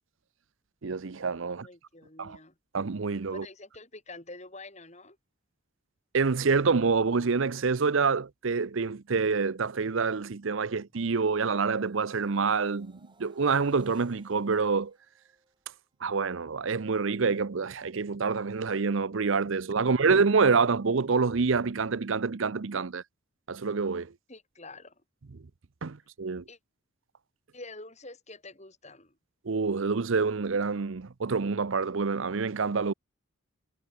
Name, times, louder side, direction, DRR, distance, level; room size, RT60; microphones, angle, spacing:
voice 1, 0.8-1.7 2.2-2.4 2.7-3.5 6.1-14.9 16.0-23.0 23.5-24.1 25.8-26.4 29.5-32.9, right 4 dB, 70° right, 0.7 m, -27 dB
voice 2, 1.5-2.5 3.3-5.2 19.8-19.9 24.3-24.9 26.5-26.6 27.5-29.2, left 2 dB, 30° left, 4.9 m, -47 dB
sound 1, 10.4-16.3 16.7-17.0, right 2 dB, 20° right, 5.8 m, -66 dB
head